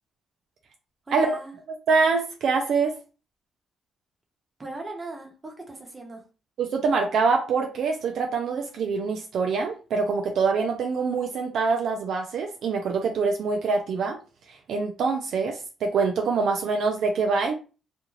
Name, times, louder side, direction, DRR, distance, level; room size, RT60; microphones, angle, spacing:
voice 1, 1.1-1.6 4.6-6.2, right 2 dB, 25° right, 0 dB, 1.0 m, -38 dB
voice 2, 1.9-3.0 6.6-14.2 14.5-17.5, right 4 dB, 70° right, 2 dB, 0.4 m, -25 dB
2.5 x 2.3 x 3.1 m, 0.34 s
cardioid pair, 90°, 0 cm